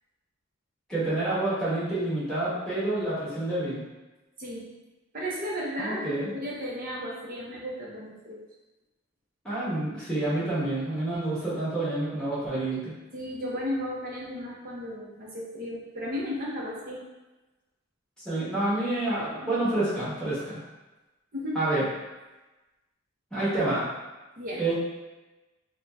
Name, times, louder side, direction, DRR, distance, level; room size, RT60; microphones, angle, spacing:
voice 1, 0.9-3.8 5.8-6.3 9.4-12.9 18.2-20.6 21.5-21.8 23.3-23.8 24.6-24.7, right 2 dB, 5° left, -12 dB, 1.0 m, -28 dB
voice 2, 5.1-8.4 13.1-17.0 21.3-21.7 24.4-24.6, equal, 40° right, -4 dB, 0.6 m, -34 dB
2.6 x 2.1 x 3.3 m, 1.1 s
head